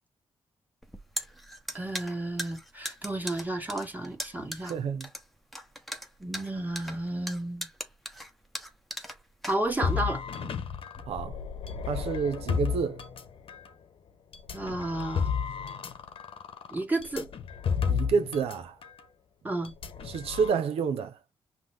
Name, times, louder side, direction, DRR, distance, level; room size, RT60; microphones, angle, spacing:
sound 1, 0.8-10.0, equal, ahead, 0.9 m, -39 dB
voice 1, 1.7-4.8 6.2-7.7 9.5-10.2 14.5-15.3 16.7-17.3 19.4-19.7, right 2 dB, 15° right, 1.5 m, -32 dB
voice 2, 4.6-5.1 11.1-11.4 11.9-13.0 17.9-18.7 20.1-21.2, right 6 dB, 85° right, 0.7 m, -29 dB
sound 2, 9.8-13.7 14.3-18.6 18.8-19.0 19.6-20.5, left 6 dB, 70° left, 1.0 m, -32 dB
5.8 x 2.2 x 3.3 m
cardioid pair, 70°, 10 cm